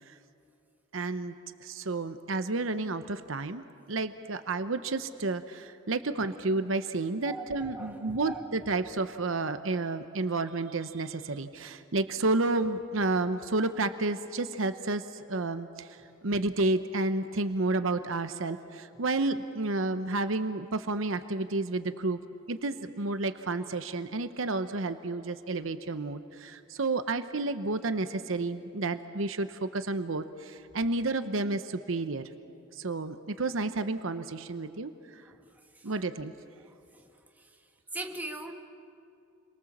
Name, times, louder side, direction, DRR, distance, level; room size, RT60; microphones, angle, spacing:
voice 1, 0.9-1.3 1.6-16.0 16.2-22.2 22.5-32.2 32.7-35.2 35.8-36.3, right 2 dB, 70° right, 10 dB, 0.9 m, -31 dB
voice 2, 7.2-8.4 35.2-35.5 35.8-36.0 36.9-37.1 37.4-37.5 37.9-38.5, right 1 dB, 10° right, 2 dB, 1.7 m, -40 dB
29.5 x 23.0 x 7.4 m, 2.6 s
head